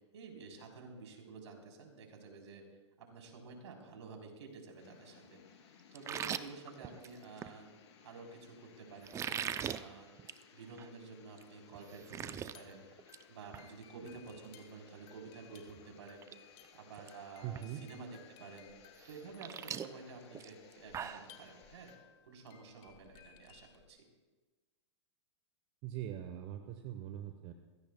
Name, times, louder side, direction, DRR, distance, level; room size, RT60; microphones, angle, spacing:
voice 1, 0.1-2.6 3.0-5.4 5.9-7.7 8.0-10.1 10.5-12.9 13.3-16.3 16.7-18.7 19.0-21.9 22.3-24.0, right 4 dB, 70° right, 1 dB, 3.7 m, -51 dB
sound 1, 4.8-22.0, left 7 dB, 65° left, 3.0 m, -62 dB
sound 2, 5.9-7.5 9.0-9.8 10.2-10.4 10.8-10.9 11.4-11.5 11.7-12.5 12.9-13.2 13.5-13.7 15.5-15.6 16.1-16.4 16.6-17.1 17.5-17.6 19.0-21.3, right 9 dB, 20° right, 0.5 m, -40 dB
sound 3, 12.4-23.9, left 10 dB, 40° left, 2.1 m, -62 dB
voice 2, 17.4-17.8 25.8-27.5, right 11 dB, 40° right, 6 dB, 1.0 m, -42 dB
24.0 x 16.5 x 2.3 m, 1.3 s
hypercardioid pair, 120°, 15 cm